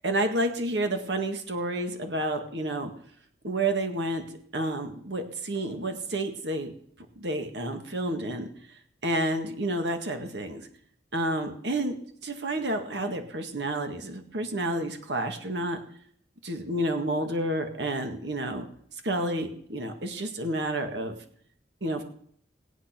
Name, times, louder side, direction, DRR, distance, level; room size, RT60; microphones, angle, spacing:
voice 1, 0.0-2.9 3.4-4.3 4.5-6.7 7.2-8.5 9.0-10.7 11.1-12.0 12.2-15.8 16.4-18.7 19.0-21.2 21.8-22.0, right 1 dB, 70° right, 5 dB, 1.8 m, -30 dB
19.5 x 8.7 x 6.0 m, 0.65 s
head